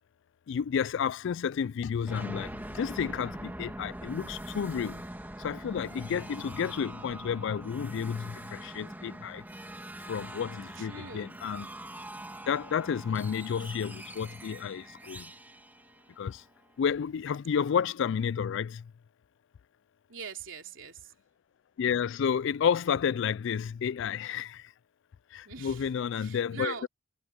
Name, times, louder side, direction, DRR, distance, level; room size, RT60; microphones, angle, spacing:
voice 1, 0.5-5.0 5.4-9.4 10.1-11.7 12.5-15.3 16.2-16.4 16.8-18.8 21.8-24.6 25.3-26.9, left 7 dB, 65° left, 0.3 m, -31 dB
sound 1, 2.1-16.7, right 1 dB, 10° right, 2.1 m, -43 dB
voice 2, 10.7-11.3 20.1-21.1 25.4-26.9, right 6 dB, 65° right, 3.5 m, -42 dB
head